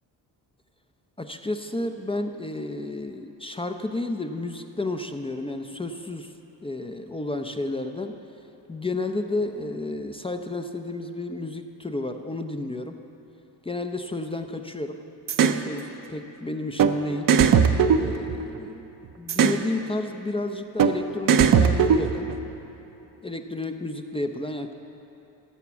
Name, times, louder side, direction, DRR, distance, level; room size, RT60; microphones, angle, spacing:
voice 1, 1.2-6.3 6.6-8.2 8.7-13.0 13.6-15.0 15.6-17.3 18.0-18.9 19.2-22.3 23.2-24.7, left 2 dB, 15° left, 6 dB, 0.6 m, -31 dB
sound 1, 15.3-15.6 16.8-16.9 17.3-18.7 19.3-19.6 20.8-20.9 21.3-22.4, right 7 dB, 50° right, 0.7 m, -19 dB
15.5 x 6.0 x 7.0 m, 2.9 s
cardioid pair, 85°, 42 cm